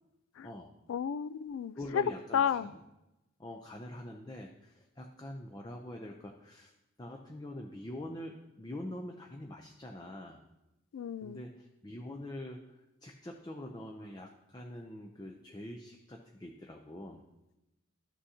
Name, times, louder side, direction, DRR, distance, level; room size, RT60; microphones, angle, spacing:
voice 1, 0.9-2.0 2.3-2.7 10.9-11.4, left 8 dB, 80° left, 17 dB, 0.3 m, -32 dB
voice 2, 1.7-2.8 3.4-6.7 7.0-10.4 11.2-17.2, left 1 dB, 20° left, 2 dB, 0.5 m, -44 dB
12.5 x 6.1 x 2.8 m, 0.94 s
head